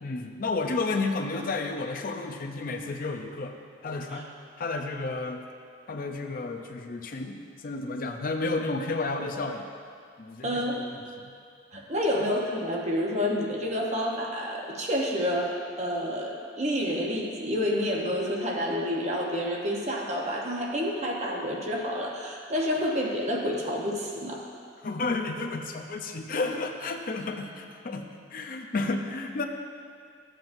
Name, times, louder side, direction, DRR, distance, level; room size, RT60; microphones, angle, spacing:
voice 1, 0.0-3.6 3.8-4.3 4.6-5.4 5.9-9.7 10.2-11.3 11.7-11.9 24.8-28.0 28.3-29.4, left 3 dB, 50° left, 4 dB, 0.5 m, -32 dB
voice 2, 10.4-10.8 11.7-24.4, equal, 40° right, -1 dB, 1.0 m, -29 dB
13.0 x 7.5 x 2.6 m, 2.2 s
head